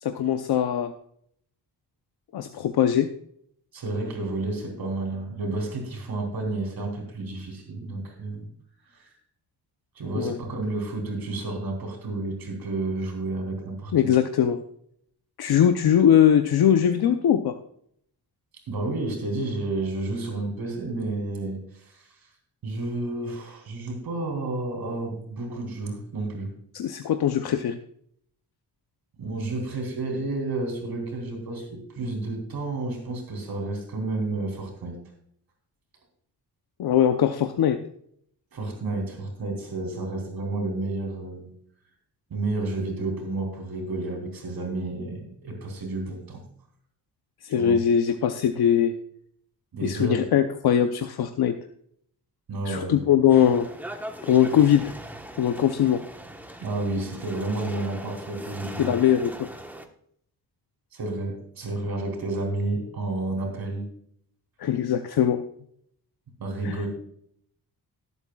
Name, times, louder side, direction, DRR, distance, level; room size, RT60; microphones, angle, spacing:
voice 1, 0.0-0.9 2.3-3.1 10.1-10.4 13.9-14.6 15.4-17.5 26.7-27.8 36.8-37.8 47.4-48.9 49.8-51.5 52.7-53.7 54.2-54.9 55.4-56.0 58.8-59.5 64.6-65.4 66.6-66.8, left 9 dB, 75° left, 7 dB, 0.8 m, -21 dB
voice 2, 3.7-8.5 8.9-9.1 10.0-13.9 18.7-22.1 22.6-26.5 29.2-35.0 38.5-41.5 42.3-46.4 47.5-47.8 49.7-50.2 52.5-53.1 56.6-58.9 60.9-63.8 66.4-66.9, right 2 dB, 70° right, 2 dB, 3.6 m, -31 dB
sound 1, 53.3-59.9, right 1 dB, 5° right, 1.2 m, -40 dB
19.5 x 8.2 x 2.4 m, 0.67 s
wide cardioid pair, 125°, 38 cm